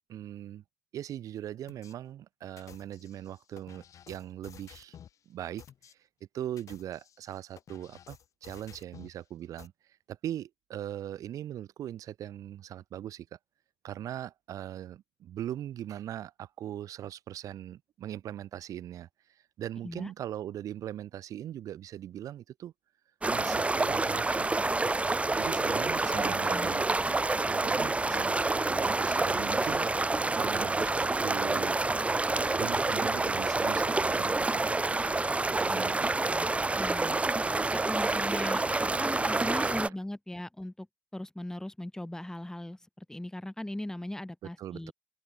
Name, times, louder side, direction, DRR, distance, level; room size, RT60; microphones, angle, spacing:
voice 1, 0.1-0.6 0.9-5.0 5.3-6.0 6.3-13.4 13.8-22.7 23.3-24.9 25.4-26.9 27.4-28.4 28.6-31.8 32.5-35.0 35.5-36.3 37.0-37.4 44.6-44.9, right 11 dB, 60° right, 4.4 m, -40 dB
sound 1, 1.7-1.9 2.6-5.2 5.6-5.9 6.4-9.2 9.6-9.7, left 9 dB, 55° left, 4.7 m, -53 dB
sound 2, 23.2-39.9, right 3 dB, 20° right, 1.0 m, -28 dB
voice 2, 26.1-26.7 35.7-36.5 36.8-37.2 37.7-38.6 38.9-40.9 41.1-44.9, left 1 dB, 10° left, 6.8 m, -39 dB
open air
hypercardioid pair, 45°, 7 cm